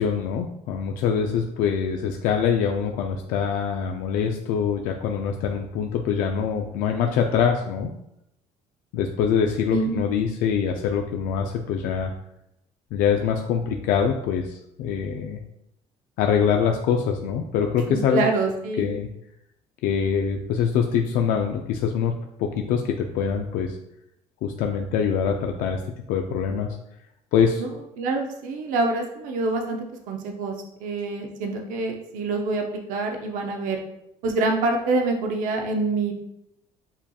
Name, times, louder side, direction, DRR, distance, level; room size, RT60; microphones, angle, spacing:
voice 1, 0.0-7.9 8.9-12.1 12.9-15.4 16.2-18.2 18.8-19.1 19.8-22.1 22.4-23.8 24.4-25.8 26.1-26.7 27.3-27.6, left 7 dB, 80° left, 3 dB, 0.4 m, -24 dB
voice 2, 9.7-10.0 17.9-18.8 27.6-27.7 28.0-29.8 30.1-30.5 30.8-33.8 34.2-36.1, right 3 dB, 75° right, 3 dB, 0.6 m, -26 dB
7.2 x 2.8 x 2.3 m, 0.82 s
cardioid pair, 135°, 14 cm